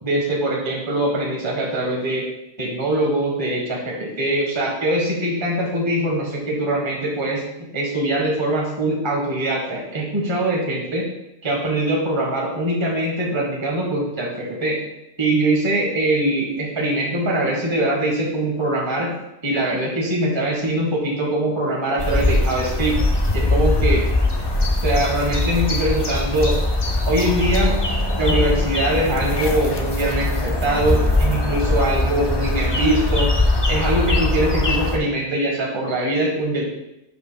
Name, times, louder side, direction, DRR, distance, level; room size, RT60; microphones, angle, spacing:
voice 1, 0.0-2.2 2.6-7.4 7.7-11.1 11.4-14.8 15.2-19.1 19.4-22.9 23.3-24.1 24.8-26.6 27.1-27.8 28.2-33.3 33.7-36.6, right 1 dB, 20° right, -3 dB, 1.3 m, -22 dB
sound 1, 22.0-35.0, left 2 dB, 25° left, 0.6 m, -21 dB
12.0 x 5.3 x 2.3 m, 0.86 s
omnidirectional pair, 1.3 m